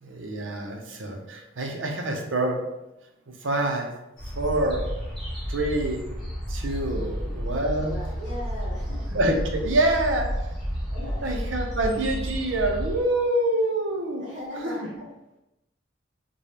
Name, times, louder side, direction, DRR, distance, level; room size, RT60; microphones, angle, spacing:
voice 1, 0.0-2.6 3.4-3.9 4.4-4.9 5.5-6.0 6.5-8.0 9.1-10.3 11.2-14.2 14.6-14.7, right 1 dB, 75° right, 2 dB, 0.7 m, -26 dB
sound 1, 4.2-13.0, equal, ahead, 1.3 m, -31 dB
voice 2, 6.9-7.4 7.8-9.2 10.9-11.3 14.2-15.1, left 1 dB, 40° right, -8 dB, 1.5 m, -39 dB
4.0 x 2.3 x 3.3 m, 0.91 s
head